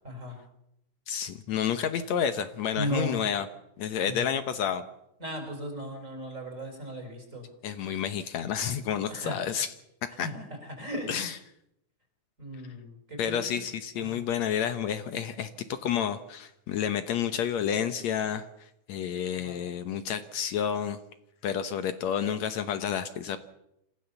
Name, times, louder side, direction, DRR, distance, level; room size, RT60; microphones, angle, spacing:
voice 1, 0.0-0.4 2.7-3.2 4.1-4.2 5.2-7.5 9.1-9.4 10.2-11.1 12.4-13.6 14.0-14.2 19.3-19.6, equal, 25° right, 4 dB, 5.0 m, -36 dB
voice 2, 1.1-3.5 3.8-4.8 7.6-9.7 10.2-10.3 11.1-11.4 13.2-21.0 21.4-23.4, left 8 dB, 70° left, 10 dB, 2.2 m, -30 dB
27.0 x 16.0 x 7.0 m, 0.81 s
omnidirectional pair, 3.4 m